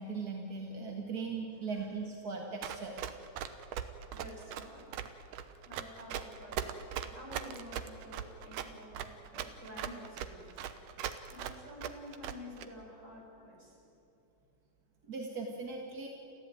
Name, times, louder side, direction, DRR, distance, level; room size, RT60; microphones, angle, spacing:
voice 1, 0.0-3.0 15.1-16.1, right 4 dB, 40° right, 1 dB, 1.5 m, -39 dB
voice 2, 1.6-1.9 4.1-4.8 5.6-6.7 7.0-10.6 11.3-13.8, left 1 dB, 20° right, -2 dB, 5.9 m, -50 dB
Run, 2.6-12.7, right 10 dB, 85° right, 2.5 m, -39 dB
29.0 x 15.0 x 9.2 m, 2.9 s
omnidirectional pair, 3.6 m